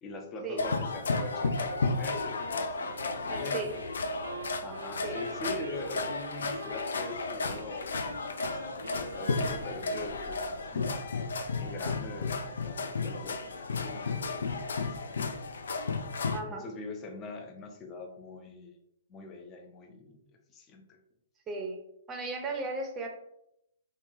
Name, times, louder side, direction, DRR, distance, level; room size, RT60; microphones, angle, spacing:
voice 1, 0.0-3.8 4.6-8.0 8.4-11.0 11.6-15.2 16.5-18.7 19.1-20.2 20.5-21.0, left 2 dB, 25° left, 4 dB, 0.5 m, -43 dB
sound 1, 0.6-16.4, left 3 dB, 75° left, 0.3 m, -33 dB
Wind instrument woodwind instrument, 2.4-7.2 7.5-10.1, right 4 dB, 85° right, 0.4 m, -46 dB
voice 2, 3.3-3.7 5.0-5.2 16.3-16.6 21.5-21.8 22.1-23.1, right 3 dB, 20° right, 2 dB, 0.6 m, -35 dB
3.1 x 2.3 x 2.6 m, 0.79 s
hypercardioid pair, 130°, 0 cm